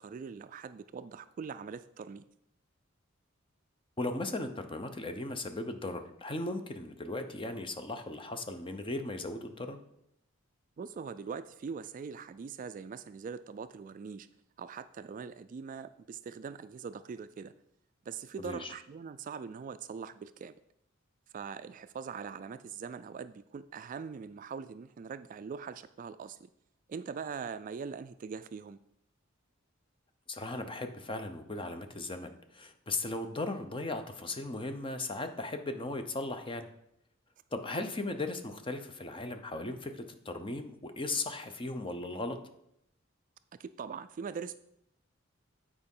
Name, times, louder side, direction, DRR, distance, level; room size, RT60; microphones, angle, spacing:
voice 1, 0.0-2.2 10.8-14.3 14.6-17.5 18.1-20.6 21.3-26.5 26.9-28.8 43.6-44.6, right 6 dB, 40° right, 13 dB, 0.3 m, -42 dB
voice 2, 4.0-9.8 18.4-18.7 30.3-36.7 37.5-42.4, left 2 dB, 25° left, 7 dB, 0.8 m, -37 dB
8.8 x 4.9 x 5.4 m, 0.76 s
head